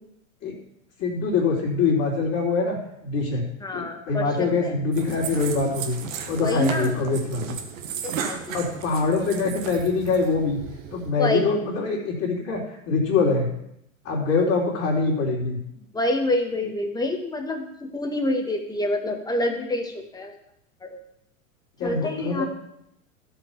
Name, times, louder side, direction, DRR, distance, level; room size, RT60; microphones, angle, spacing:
voice 1, 1.0-2.8 3.0-3.4 3.7-6.0 6.3-7.6 8.5-10.6 10.9-13.5 14.0-15.6 21.8-22.5, left 4 dB, 40° left, -5 dB, 3.5 m, -24 dB
voice 2, 3.6-4.7 6.4-7.0 8.0-8.6 11.2-11.5 15.9-20.3 20.9-21.0 21.8-22.5, left 1 dB, 10° left, 3 dB, 1.8 m, -27 dB
sound 1, 4.9-11.1, right 7 dB, 70° right, 1.8 m, -35 dB
13.0 x 5.7 x 7.2 m, 0.78 s
hypercardioid pair, 115°, 41 cm